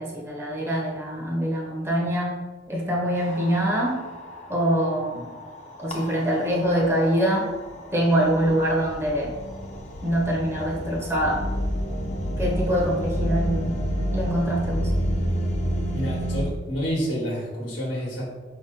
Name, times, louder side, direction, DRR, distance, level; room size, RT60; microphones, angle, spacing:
voice 1, 0.0-2.4 2.7-4.0 4.5-5.3 5.8-7.5 7.9-9.3 10.0-11.4 12.4-13.8 14.1-14.9, equal, 15° right, -3 dB, 0.6 m, -24 dB
sound 1, 3.1-16.5, equal, 35° left, 0.5 m, -30 dB
voice 2, 15.9-18.2, equal, 80° left, -4 dB, 1.0 m, -29 dB
4.6 x 2.8 x 3.6 m, 1.3 s
head